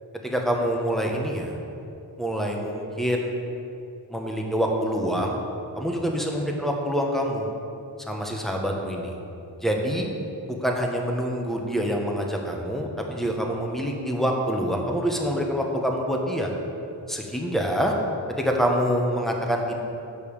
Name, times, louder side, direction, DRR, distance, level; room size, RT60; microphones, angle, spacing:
voice 1, 0.2-1.6 2.2-3.3 4.1-5.4 5.7-7.5 8.1-9.2 9.6-10.1 10.5-16.5 17.1-17.9 18.3-19.8, equal, ahead, 0 dB, 1.1 m, -26 dB
7.1 x 5.4 x 6.5 m, 2.8 s
wide cardioid pair, 75°, 44 cm